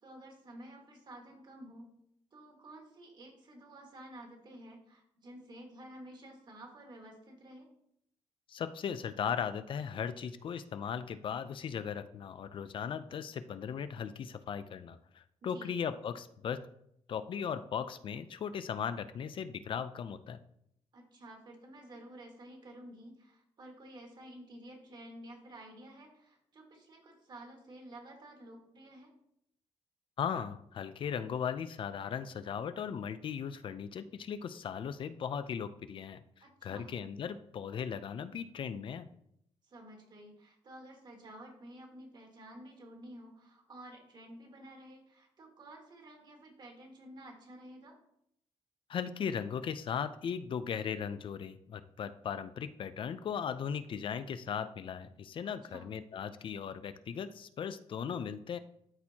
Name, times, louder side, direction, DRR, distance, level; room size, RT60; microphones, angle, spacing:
voice 1, 0.0-1.9 2.3-7.7 15.5-15.7 20.9-29.1 36.4-36.9 39.6-48.0 55.4-55.9, right 1 dB, 40° right, 2 dB, 1.8 m, -51 dB
voice 2, 8.5-16.6 17.1-20.4 30.2-36.2 36.6-39.1 48.9-58.6, left 7 dB, 50° left, 12 dB, 0.5 m, -37 dB
13.0 x 4.4 x 2.8 m, 0.73 s
wide cardioid pair, 150°, 11 cm